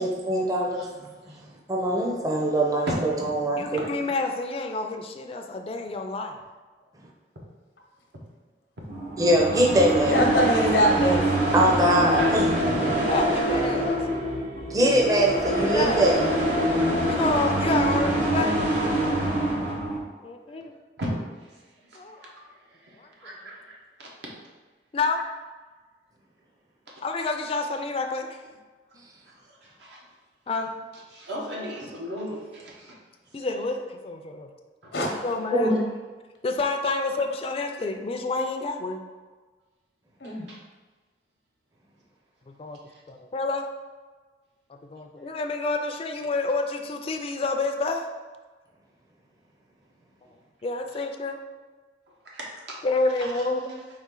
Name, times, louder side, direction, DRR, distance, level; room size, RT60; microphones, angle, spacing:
voice 1, 0.0-0.8 1.7-3.8 9.2-10.1 11.5-12.5 14.7-16.2, right 1 dB, 20° right, -1 dB, 0.5 m, -22 dB
voice 2, 0.7-1.4 3.7-3.9 12.1-12.3 12.6-13.0 20.5-20.6 21.0-21.1 21.9-22.4 22.8-24.3 29.5-30.0 31.1-32.9 34.8-34.9 40.5-40.6 52.3-52.8 53.2-53.4, equal, 80° right, -3 dB, 1.1 m, -37 dB
voice 3, 3.6-6.4 13.1-14.0 14.6-14.7 15.6-16.0 17.1-18.5 20.2-20.7 21.9-22.2 23.0-23.4 24.9-25.2 27.0-28.4 30.5-30.7 33.3-34.5 35.2-35.7 36.4-39.0 42.5-42.8 43.1-43.7 44.9-48.0 50.6-51.4 52.8-53.7, left 3 dB, 35° left, 4 dB, 0.3 m, -28 dB
sound 1, 8.9-20.0, right 1 dB, 45° right, 1.0 m, -25 dB
voice 4, 10.1-11.2 34.9-35.8 40.2-40.5, equal, 85° left, 0 dB, 0.8 m, -23 dB
4.2 x 3.1 x 3.7 m, 1.3 s
head